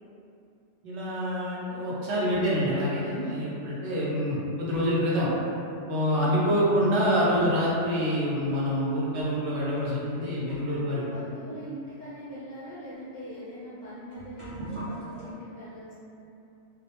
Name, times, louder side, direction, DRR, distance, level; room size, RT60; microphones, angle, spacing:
voice 1, 0.8-5.3 5.9-11.0, equal, 75° right, -6 dB, 0.9 m, -26 dB
sound 1, 2.2-2.7 3.6-3.7 4.3-7.8 8.1-8.2 9.0-9.1 9.9-10.0 10.4-15.3, right 1 dB, 35° right, 0.6 m, -45 dB
voice 2, 10.7-16.0, equal, 55° left, -11 dB, 0.6 m, -42 dB
2.2 x 2.0 x 2.8 m, 2.6 s
omnidirectional pair, 1.2 m